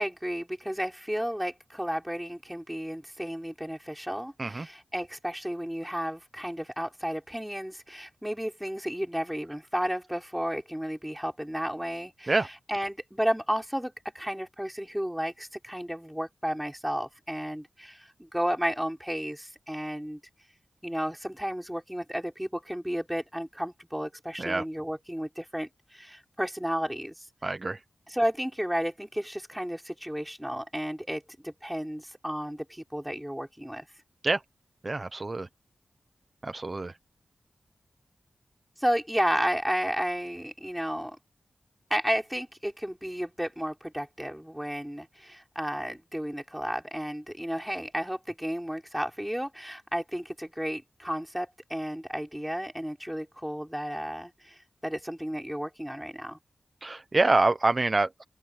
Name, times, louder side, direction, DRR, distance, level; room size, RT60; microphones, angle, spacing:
voice 1, 0.0-20.2 20.8-27.3 28.1-33.9 38.8-41.2 41.9-56.4, equal, 5° right, 5.4 m, -32 dB
voice 2, 27.4-27.8 34.2-34.4 34.8-35.5 36.4-36.9 56.8-58.2, right 2 dB, 35° right, 0.7 m, -26 dB
open air
wide cardioid pair, 80°, 0 cm